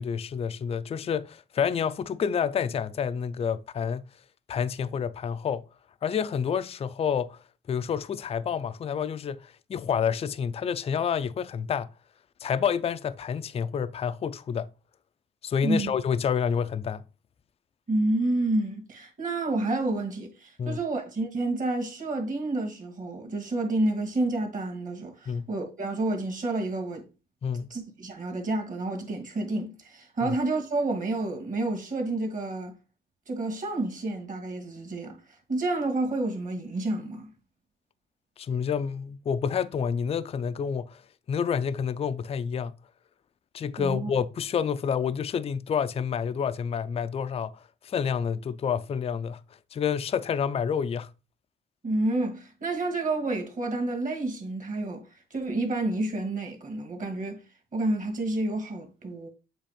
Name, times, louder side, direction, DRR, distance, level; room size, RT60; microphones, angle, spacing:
voice 1, 0.0-4.1 4.5-5.6 6.0-7.4 7.7-11.9 12.4-14.7 15.4-17.0 20.6-20.8 25.3-25.5 27.4-27.7 30.2-30.4 38.4-41.0 41.3-42.7 43.5-47.5 47.8-49.4 49.7-51.1, left 7 dB, 30° left, 0.4 m, -28 dB
voice 2, 17.9-27.1 27.7-32.7 33.3-35.2 35.5-37.3 43.8-44.1 51.8-55.0 55.3-57.4 57.7-59.3, right 2 dB, 40° right, 1.9 m, -29 dB
7.5 x 2.5 x 5.0 m
cardioid pair, 90°, 20 cm